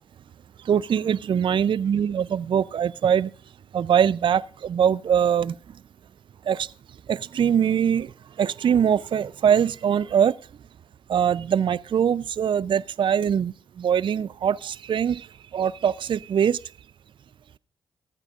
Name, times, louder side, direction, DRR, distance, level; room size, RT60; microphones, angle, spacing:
voice 1, 0.7-3.3 3.7-5.5 6.5-6.7 7.1-8.1 8.4-10.3 11.1-13.5 13.8-15.2 15.5-16.6, right 8 dB, 50° right, 0.5 m, -22 dB
16.0 x 14.5 x 2.4 m
hypercardioid pair, 45°, 10 cm